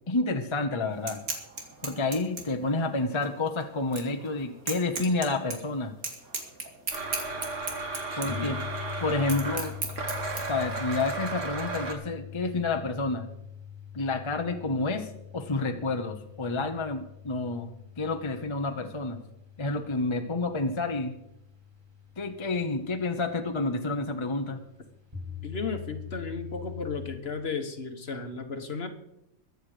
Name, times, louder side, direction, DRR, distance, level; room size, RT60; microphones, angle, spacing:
voice 1, 0.1-1.2 1.8-5.9 8.2-8.6 9.0-9.7 10.5-13.3 13.9-17.7 18.0-19.2 19.6-21.1 22.2-24.6, left 3 dB, 25° left, 6 dB, 0.9 m, -29 dB
sound 1, 0.9-10.4, right 4 dB, 90° right, 2.6 m, -38 dB
Domestic sounds home sounds, 6.9-11.9, right 3 dB, 60° right, 2.3 m, -34 dB
voice 2, 8.1-8.6 25.4-28.9, left 4 dB, 45° left, 7 dB, 1.5 m, -34 dB
sound 2, 8.3-27.2, left 9 dB, 20° right, 2.4 m, -44 dB
22.5 x 8.2 x 5.0 m, 0.83 s
omnidirectional pair, 1.5 m